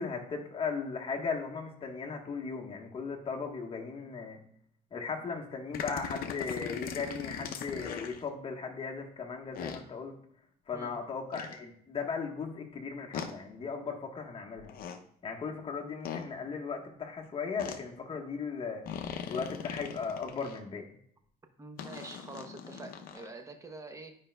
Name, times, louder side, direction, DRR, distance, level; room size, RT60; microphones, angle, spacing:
voice 1, 0.0-4.4 4.9-10.1 10.7-14.7 15.2-18.8 19.3-20.8, left 5 dB, 35° left, 1 dB, 1.2 m, -37 dB
sound 1, 5.7-8.2 9.5-9.8 11.3-11.6 13.1-13.3 14.6-15.0 16.0-16.3 17.6-17.8 18.9-20.6 21.8-23.3, left 7 dB, 60° left, 0.6 m, -40 dB
voice 2, 21.6-24.1, right 3 dB, 20° right, 6 dB, 0.8 m, -46 dB
10.5 x 5.1 x 2.2 m, 0.65 s
cardioid pair, 110°, 17 cm